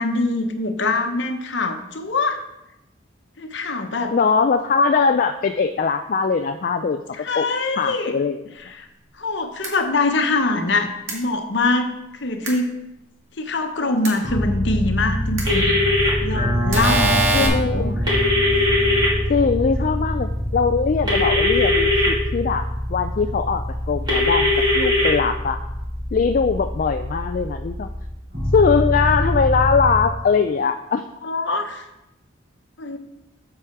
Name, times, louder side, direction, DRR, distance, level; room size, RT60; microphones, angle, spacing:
voice 1, 0.0-2.4 3.4-4.1 7.1-8.1 8.6-8.9 9.2-12.7 13.4-15.7 16.2-17.9 31.2-31.8 32.8-33.0, left 3 dB, 60° left, 5 dB, 1.0 m, -24 dB
voice 2, 4.1-7.0 7.3-7.5 7.8-8.4 17.3-18.0 19.3-23.6 23.9-25.6 26.1-27.9 28.5-31.0, left 5 dB, 45° left, 6 dB, 0.3 m, -21 dB
sound 1, 9.6-9.7 11.1-11.2 12.4-12.5 14.0-14.1 15.4-15.5 16.7-17.5, right 2 dB, 70° right, 2.0 m, -22 dB
sound 2, 14.2-30.0, equal, 45° right, 2.9 m, -25 dB
sound 3, 15.4-16.1 18.1-19.1 21.1-22.1 24.1-25.1, left 2 dB, 20° right, 2.3 m, -19 dB
7.8 x 4.8 x 5.9 m, 0.90 s
head